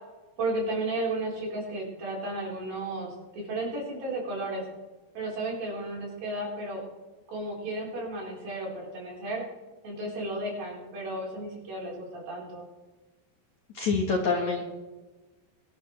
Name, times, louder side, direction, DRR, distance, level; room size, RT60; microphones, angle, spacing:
voice 1, 0.4-4.6 5.1-6.8 7.3-9.4 9.8-12.7, right 2 dB, 55° right, -3 dB, 5.9 m, -33 dB
voice 2, 13.7-14.6, left 4 dB, 60° left, 0 dB, 2.1 m, -26 dB
23.0 x 11.5 x 3.3 m, 1.2 s
omnidirectional pair, 4.9 m